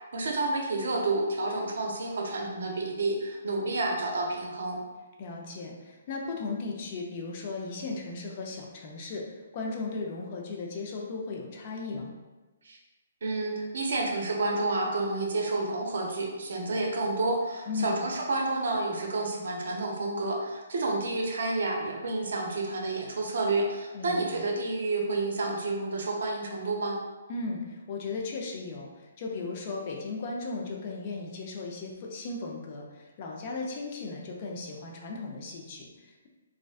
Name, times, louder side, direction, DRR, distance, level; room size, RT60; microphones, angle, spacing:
voice 1, 0.1-4.8 12.7-12.8 13.2-27.0, right 2 dB, 70° right, 0 dB, 0.5 m, -30 dB
voice 2, 5.2-9.2 9.5-12.1 17.7-18.0 23.9-24.4 27.3-36.3, left 3 dB, 40° left, 0 dB, 0.4 m, -36 dB
2.5 x 2.1 x 2.3 m, 1.2 s
hypercardioid pair, 145°, 0 cm